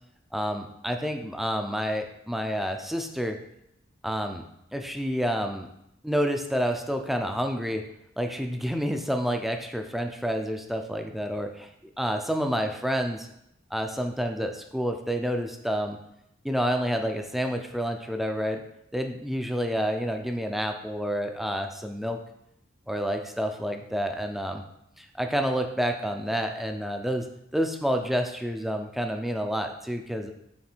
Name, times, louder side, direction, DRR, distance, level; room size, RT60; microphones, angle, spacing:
voice 1, 0.3-3.4 4.0-4.4 4.7-5.7 6.0-7.8 8.2-11.7 12.0-13.3 13.7-16.0 16.4-18.6 18.9-22.2 22.9-24.6 25.0-27.2 27.5-30.3, equal, ahead, 4 dB, 0.5 m, -29 dB
7.3 x 3.3 x 4.5 m, 0.79 s
head